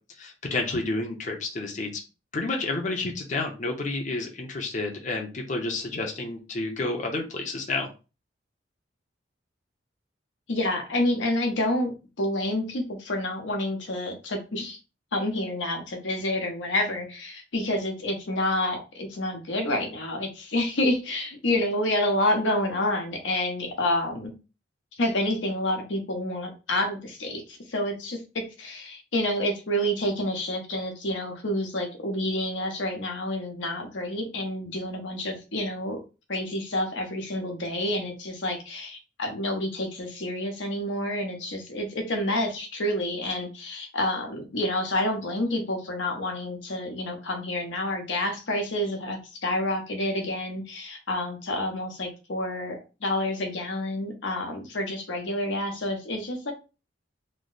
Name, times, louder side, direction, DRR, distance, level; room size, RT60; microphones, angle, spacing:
voice 1, 0.2-1.9 2.3-7.9, left 2 dB, 45° left, 2 dB, 0.6 m, -30 dB
voice 2, 10.5-14.8 15.1-24.3 25.0-36.0 36.3-56.5, left 1 dB, 90° left, 2 dB, 0.9 m, -28 dB
3.1 x 2.0 x 3.9 m, 0.31 s
head